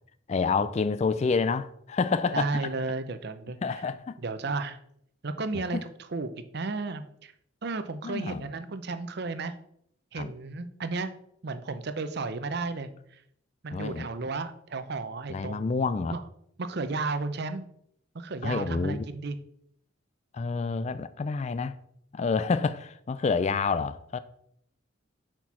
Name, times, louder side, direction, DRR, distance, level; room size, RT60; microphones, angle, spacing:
voice 1, 0.3-2.5 3.6-4.2 5.7-5.8 8.0-8.5 10.2-10.3 13.7-14.1 15.3-16.2 18.4-19.0 20.3-21.8 22.1-24.2, left 4 dB, 35° left, 0.3 m, -28 dB
voice 2, 2.3-3.6 4.2-4.8 5.2-7.3 7.6-9.5 10.1-11.1 11.4-13.2 13.6-15.7 16.1-16.2 16.6-17.7 18.1-19.4, right 3 dB, 55° right, 0.6 m, -33 dB
6.3 x 4.4 x 5.5 m
head